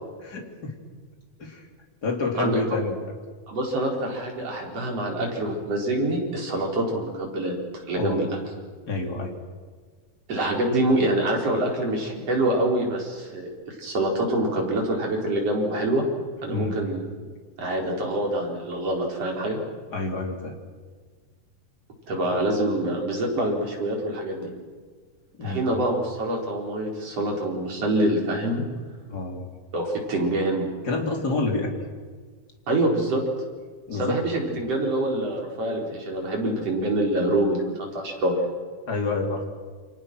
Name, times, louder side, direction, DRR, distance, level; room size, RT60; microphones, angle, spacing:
voice 1, 0.2-0.7 1.4-1.6 2.0-3.0 8.0-8.3 8.9-9.4 16.5-16.8 19.9-20.5 25.4-25.6 29.1-29.5 30.8-31.7 33.9-34.2 38.9-39.4, left 3 dB, 30° left, 2 dB, 3.5 m, -28 dB
voice 2, 3.5-8.3 10.3-13.5 13.8-16.0 16.4-17.0 17.6-19.6 22.1-24.5 25.4-28.6 29.7-30.6 32.7-33.2 33.9-38.5, right 1 dB, 50° right, 0 dB, 5.5 m, -25 dB
29.5 x 25.0 x 6.3 m, 1.5 s
omnidirectional pair, 3.6 m